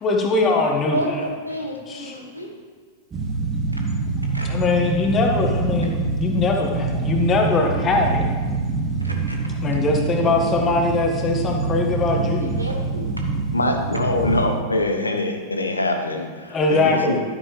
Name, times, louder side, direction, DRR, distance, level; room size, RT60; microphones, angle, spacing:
voice 1, 0.0-1.2 1.9-2.2 4.4-8.2 9.5-12.6 16.5-17.2, left 3 dB, 25° left, 2 dB, 1.6 m, -21 dB
voice 2, 0.9-2.5 4.3-4.4 9.0-9.3 12.4-13.1, equal, 85° right, 2 dB, 1.4 m, -30 dB
sound 1, 3.1-14.6, right 3 dB, 20° right, 1.3 m, -25 dB
voice 3, 13.5-17.2, left 2 dB, 80° left, 4 dB, 1.1 m, -23 dB
12.0 x 9.2 x 3.3 m, 1.5 s
figure-of-eight pair, 90°, 0 cm